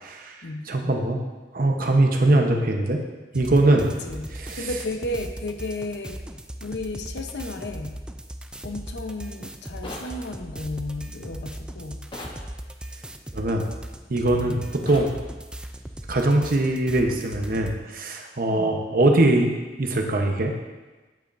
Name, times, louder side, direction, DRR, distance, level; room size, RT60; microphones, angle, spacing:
voice 1, 0.0-0.3 0.7-1.2 1.5-3.0 3.3-3.9 4.4-4.6 13.3-13.6 14.1-15.1 16.1-19.5 19.8-20.5, right 2 dB, 55° right, 3 dB, 0.9 m, -21 dB
sound 1, 3.3-17.8, right 1 dB, 5° right, 0.3 m, -38 dB
voice 2, 4.6-6.2 6.6-8.0 8.6-12.0 14.4-14.6 18.5-18.8, left 2 dB, 80° left, 5 dB, 0.8 m, -33 dB
sound 2, 9.8-10.1 12.1-12.4 14.9-15.1, left 2 dB, 30° left, 0.9 m, -37 dB
9.1 x 8.6 x 2.6 m, 1.2 s
head